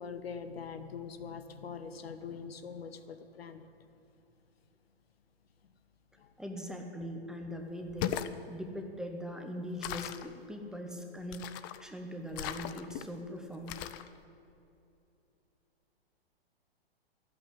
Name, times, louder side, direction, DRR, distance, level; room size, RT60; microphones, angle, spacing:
voice 1, 0.0-3.7 6.2-6.3, left 6 dB, 70° left, 10 dB, 1.2 m, -43 dB
voice 2, 6.4-8.2 8.5-11.5 11.8-13.8, equal, ahead, 2 dB, 1.1 m, -41 dB
sound 1, 7.8-8.4 9.8-10.3 11.3-11.8 12.3-13.0 13.7-14.1, left 11 dB, 20° left, 0.4 m, -38 dB
13.0 x 8.6 x 9.8 m, 2.7 s
hypercardioid pair, 120°, 32 cm